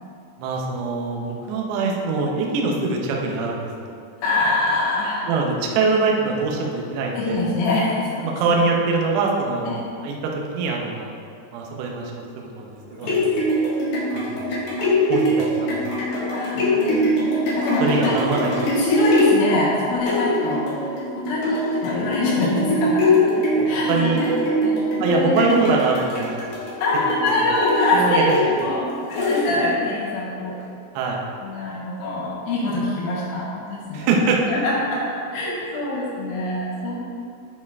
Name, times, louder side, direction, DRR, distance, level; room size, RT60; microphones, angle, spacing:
voice 1, 0.4-3.9 5.3-7.4 8.2-9.7 10.0-11.1 11.5-12.7 13.0-13.4 14.1-14.4 15.1-15.8 17.8-18.5 23.9-24.2 25.0-26.5 27.9-28.3 30.9-31.3 33.9-34.4, right 4 dB, 85° right, -1 dB, 2.3 m, -23 dB
voice 2, 4.2-5.3 7.1-8.5 9.7-9.8 16.3-18.2 18.5-23.4 23.6-24.3 24.6-25.5 26.8-28.3 28.6-30.6 31.4-34.1 34.5-35.1 35.3-37.0, left 2 dB, 85° left, -8 dB, 3.8 m, -24 dB
sound 1, 12.8-29.9 30.4-30.5, left 1 dB, 65° left, 2.5 m, -23 dB
10.5 x 4.8 x 3.5 m, 2.5 s
omnidirectional pair, 6.0 m